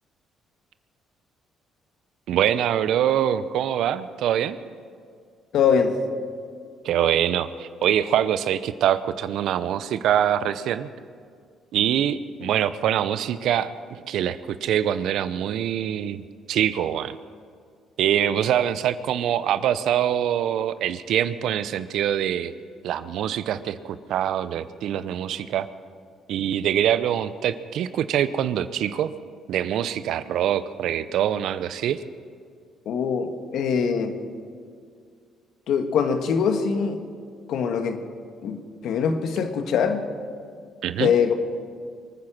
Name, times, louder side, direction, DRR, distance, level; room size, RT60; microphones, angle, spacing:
voice 1, 2.3-4.6 6.8-10.9 11.7-16.2 16.5-17.2 18.0-22.5 22.8-25.7 26.3-29.1 29.5-32.0 40.8-41.1, right 10 dB, 75° right, 14 dB, 0.7 m, -24 dB
voice 2, 5.5-6.0 12.4-12.5 32.8-34.2 35.7-37.0 37.5-38.0 38.4-40.0 41.0-41.3, left 6 dB, 70° left, 7 dB, 1.5 m, -23 dB
24.0 x 9.8 x 6.1 m, 2.1 s
supercardioid pair, 65°, 0 cm